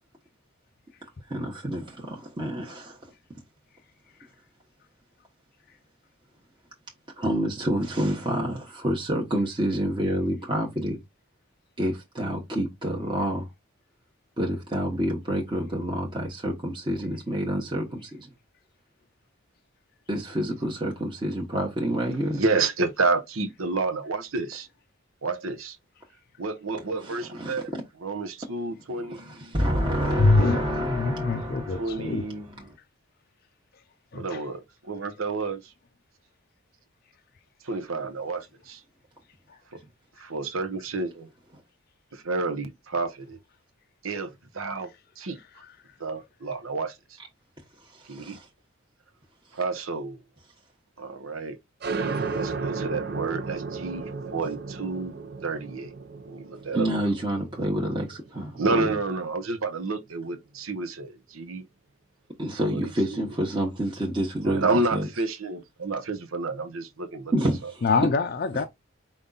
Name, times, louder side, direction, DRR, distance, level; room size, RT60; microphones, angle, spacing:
voice 1, 1.3-3.1 7.2-11.0 11.8-13.5 14.4-18.3 20.1-22.4 27.0-27.6 29.0-32.3 47.8-48.5 56.7-58.9 62.4-65.1 67.3-67.8 68.5-68.6, equal, 20° right, 1.0 m, -28 dB
voice 2, 22.3-24.7 25.2-25.8 26.4-27.7 28.0-29.6 31.8-32.7 34.1-35.7 37.6-38.8 39.7-39.8 40.2-41.3 42.1-43.4 44.0-44.9 45.2-45.4 46.0-47.2 48.0-48.4 49.5-50.2 51.0-51.6 52.3-55.1 55.4-55.9 56.3-56.9 58.6-61.7 62.7-63.2 64.4-67.3 67.6-67.7, right 3 dB, 85° right, 0.9 m, -30 dB
voice 3, 30.1-32.2 34.1-34.4 67.8-68.6, left 3 dB, 45° left, 0.4 m, -24 dB
sound 1, 51.8-59.1, right 4 dB, 50° right, 0.6 m, -34 dB
5.2 x 2.3 x 3.9 m
head